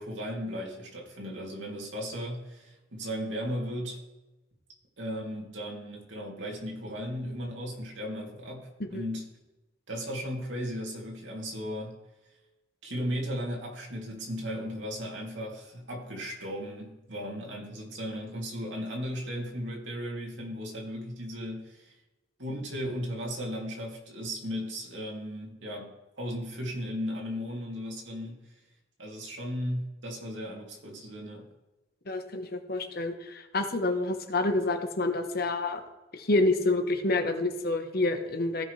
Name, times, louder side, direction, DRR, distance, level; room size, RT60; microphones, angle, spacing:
voice 1, 0.0-4.0 5.0-9.3 9.9-12.0 12.8-21.9 22.4-28.5 29.0-31.5, equal, 70° right, -1 dB, 2.7 m, -36 dB
voice 2, 32.1-35.8 36.1-38.6, left 2 dB, 55° left, 6 dB, 1.1 m, -28 dB
16.5 x 6.0 x 3.3 m, 1.1 s
head